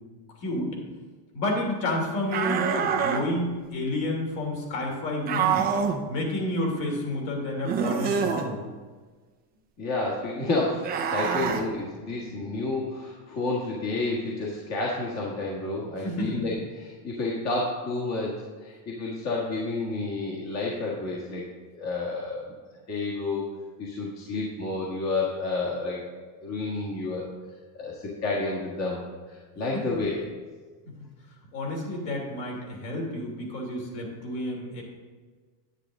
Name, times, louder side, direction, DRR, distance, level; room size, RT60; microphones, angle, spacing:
voice 1, 0.4-0.8 1.3-5.7 6.1-8.6 11.4-11.5 12.1-12.2 16.0-16.3 31.5-34.8, left 1 dB, 55° left, 0 dB, 3.2 m, -30 dB
sound 1, 2.3-3.2 5.3-6.0 7.6-8.5 10.8-11.6, right 7 dB, 20° right, 0.5 m, -26 dB
voice 2, 9.8-21.4 21.7-22.4 22.9-23.4 23.8-26.1 26.4-27.2 27.8-30.2, left 3 dB, 30° left, -4 dB, 1.7 m, -30 dB
10.0 x 9.0 x 3.7 m, 1.4 s
supercardioid pair, 145°, 49 cm